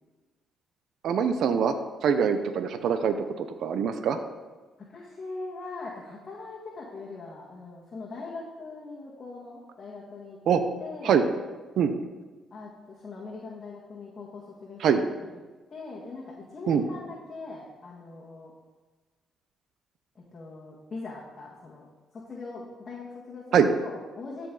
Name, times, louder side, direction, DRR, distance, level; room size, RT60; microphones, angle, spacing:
voice 1, 1.0-1.7 2.0-4.2 10.5-10.6 11.0-11.2 11.8-11.9 14.8-15.0 16.7-16.8 23.5-23.7, right 7 dB, 75° right, 9 dB, 0.6 m, -23 dB
voice 2, 4.9-11.2 12.5-15.3 15.7-18.5 20.2-21.9 22.1-24.5, left 3 dB, 40° left, -5 dB, 1.7 m, -41 dB
13.0 x 5.2 x 3.9 m, 1.3 s
cardioid pair, 90°, 0 cm